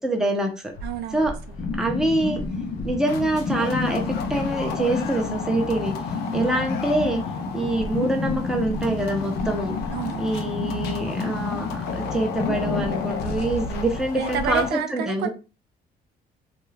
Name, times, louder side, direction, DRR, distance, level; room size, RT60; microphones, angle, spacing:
voice 1, 0.0-0.7 1.1-1.3 1.7-2.4 2.8-4.0 4.3-5.9 6.3-7.2 7.5-9.8 10.2-15.3, right 1 dB, 5° right, 0.6 m, -25 dB
sound 1, 0.7-14.7, left 5 dB, 75° left, 0.5 m, -34 dB
voice 2, 0.8-1.3 6.3-6.7 9.9-10.3 14.1-15.3, right 9 dB, 75° right, 0.4 m, -30 dB
sound 2, 1.6-14.2, left 4 dB, 40° left, 0.7 m, -30 dB
2.4 x 2.3 x 3.2 m
cardioid pair, 110°, 17 cm